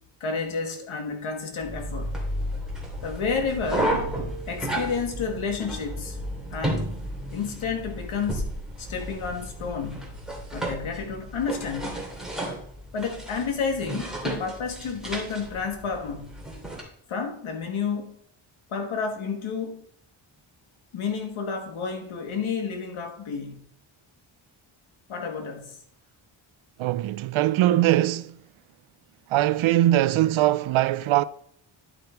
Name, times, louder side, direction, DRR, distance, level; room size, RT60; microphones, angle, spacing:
voice 1, 0.2-2.2 3.0-3.9 4.5-6.2 6.5-6.9 7.3-8.5 8.8-10.1 10.5-12.0 12.9-16.3 17.1-18.2 18.7-19.8 20.9-23.6 25.1-25.8, left 5 dB, 80° left, 1.8 m, -30 dB
sound 1, 1.6-16.8, right 1 dB, ahead, 2.6 m, -33 dB
voice 2, 26.8-28.4 29.3-31.2, right 14 dB, 80° right, 0.5 m, -21 dB
11.0 x 5.1 x 4.5 m
cardioid pair, 100°, 48 cm